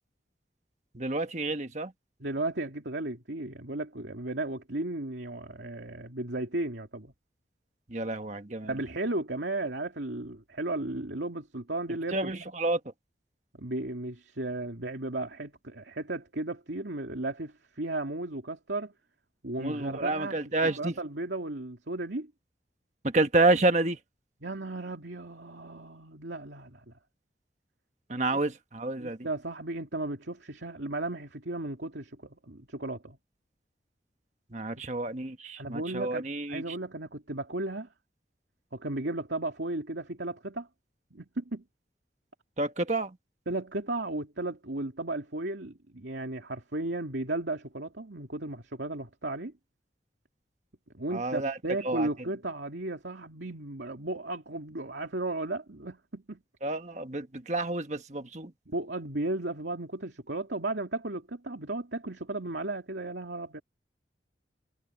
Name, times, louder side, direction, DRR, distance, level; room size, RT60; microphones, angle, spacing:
voice 1, 0.9-1.9 7.9-8.7 12.1-12.8 19.6-20.9 23.0-24.0 28.1-29.2 34.5-36.6 42.6-43.1 51.1-51.6 51.8-52.1 56.6-58.5, right 2 dB, 40° right, 1.4 m, -29 dB
voice 2, 2.2-7.1 8.6-12.3 13.6-18.9 19.4-20.4 20.8-22.3 24.4-26.9 29.0-33.2 35.6-36.2 36.5-37.9 38.7-40.7 41.1-41.6 43.5-49.5 50.9-56.4 58.7-63.6, right 2 dB, 85° right, 2.6 m, -35 dB
head